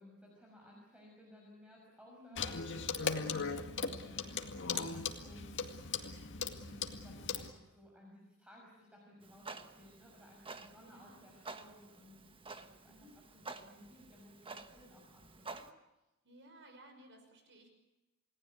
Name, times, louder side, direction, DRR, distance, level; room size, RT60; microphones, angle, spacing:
voice 1, 0.0-5.7 6.5-15.7 15.9-16.0, left 1 dB, 5° right, -2 dB, 6.1 m, -58 dB
voice 2, 2.0-2.6 3.1-3.5 10.8-11.3 12.8-13.2 16.2-17.7, right 1 dB, 55° right, 6 dB, 5.8 m, -58 dB
Clock, 2.4-7.5, left 5 dB, 55° left, 2.1 m, -38 dB
Clock 2, 9.2-15.7, right 3 dB, 25° right, 1.3 m, -51 dB
28.5 x 19.0 x 8.3 m, 0.99 s
head